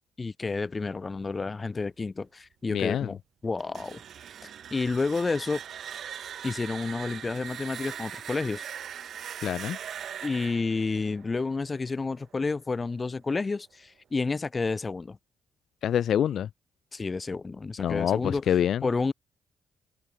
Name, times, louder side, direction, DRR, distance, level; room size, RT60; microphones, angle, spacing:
voice 1, 0.2-3.2 3.4-4.0 4.7-5.6 6.4-8.6 10.2-15.2 16.9-18.4 18.8-19.1, left 4 dB, 30° left, 2.9 m, -30 dB
voice 2, 2.7-3.1 9.4-9.8 15.8-16.5 17.8-18.9, left 9 dB, 65° left, 0.5 m, -26 dB
sound 1, 3.6-12.4, right 9 dB, 60° right, 2.7 m, -41 dB
open air
cardioid pair, 90°, 0 cm